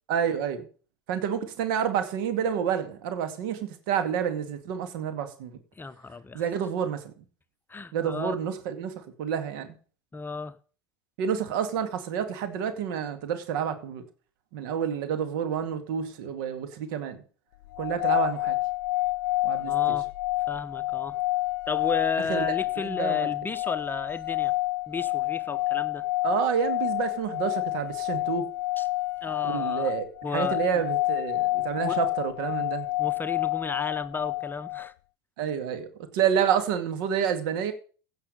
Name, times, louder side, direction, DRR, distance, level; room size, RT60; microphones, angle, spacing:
voice 1, 0.1-0.7 1.1-5.6 6.3-7.0 7.9-9.7 11.2-14.0 14.5-17.2 17.8-18.6 19.4-20.0 22.3-23.3 26.2-28.5 29.4-32.9 35.4-35.9 36.1-37.7, right 8 dB, 65° right, 2.2 m, -29 dB
voice 2, 5.8-6.4 7.7-8.4 10.1-10.6 19.7-20.1 20.5-21.2 21.7-24.5 24.9-26.1 28.8-28.9 29.2-29.9 30.2-30.8 31.8-32.0 33.0-34.9, left 4 dB, 15° left, 0.8 m, -34 dB
sound 1, 17.7-34.9, left 19 dB, 70° left, 0.5 m, -28 dB
16.0 x 6.5 x 6.7 m
hypercardioid pair, 80°, 12 cm